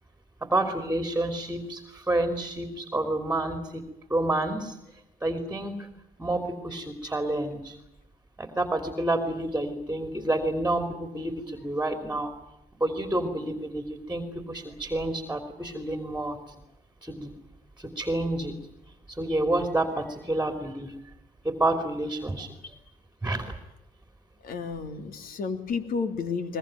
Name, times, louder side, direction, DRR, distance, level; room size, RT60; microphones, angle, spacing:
voice 1, 0.4-4.8 5.2-5.9 6.2-7.8 8.4-12.3 12.8-16.4 17.0-17.3 17.8-18.6 19.1-20.9 21.4-22.7 23.2-23.6, right 1 dB, 10° right, 7 dB, 3.1 m, -29 dB
voice 2, 24.4-26.6, left 5 dB, 60° left, 8 dB, 3.2 m, -31 dB
22.0 x 22.0 x 9.0 m, 0.87 s
cardioid pair, 110°, 17 cm